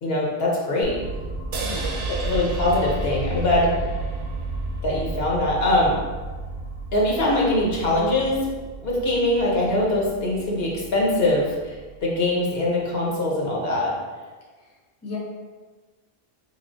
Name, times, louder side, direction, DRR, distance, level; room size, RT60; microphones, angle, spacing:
voice 1, 0.0-1.0 2.1-3.7 4.8-6.0 6.9-8.4 8.8-11.7 12.0-13.9, left 1 dB, 70° left, -3 dB, 1.1 m, -22 dB
sound 1, 0.8-12.8, right 2 dB, 45° right, 0.7 m, -33 dB
sound 2, 1.5-5.0, right 4 dB, 75° right, 0.8 m, -36 dB
voice 2, 1.6-2.0 15.0-15.2, left 3 dB, 20° left, -4 dB, 0.6 m, -35 dB
3.9 x 3.1 x 2.6 m, 1.4 s
omnidirectional pair, 1.1 m